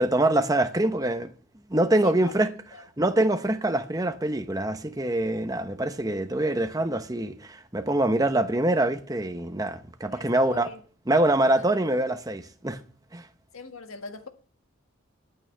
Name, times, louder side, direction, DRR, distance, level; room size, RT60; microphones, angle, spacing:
voice 1, 0.0-1.3 1.7-2.5 3.0-10.7 11.1-12.8 13.1-13.3, right 1 dB, 15° right, 0.8 m, -24 dB
voice 2, 2.0-2.3 2.7-2.8 10.1-10.8 11.6-11.7 13.5-14.3, left 4 dB, 85° left, 1.6 m, -42 dB
21.5 x 8.9 x 3.4 m
head